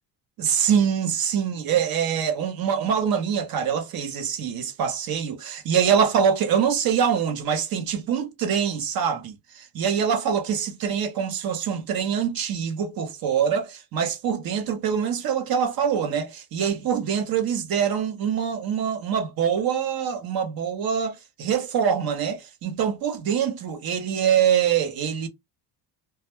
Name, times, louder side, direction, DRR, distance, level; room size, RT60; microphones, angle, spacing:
voice 1, 0.4-25.3, right 8 dB, 55° right, 0.9 m, -24 dB
2.3 x 2.2 x 3.0 m
cardioid pair, 130°, 42 cm